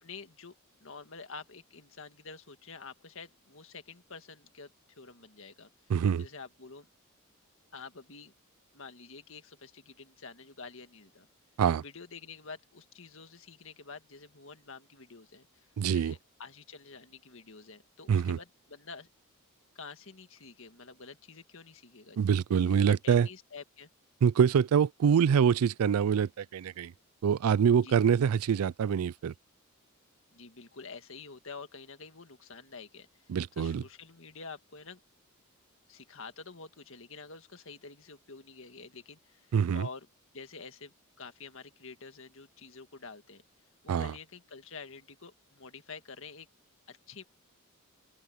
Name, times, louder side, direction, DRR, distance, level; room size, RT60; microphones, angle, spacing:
voice 1, 0.0-0.6 0.8-5.7 6.2-6.9 7.7-8.3 8.7-11.3 11.8-19.1 19.8-22.2 22.5-23.9 27.8-28.2 30.3-35.0 35.9-40.1 40.3-43.4 43.8-46.5 46.9-47.2, left 4 dB, 60° left, 1.8 m, -48 dB
voice 2, 5.9-6.2 11.6-11.8 15.8-16.1 18.1-18.4 22.2-23.3 24.2-26.9 27.2-29.3 33.3-33.8 39.5-39.9 43.9-44.1, right 7 dB, 80° right, 0.4 m, -25 dB
open air
head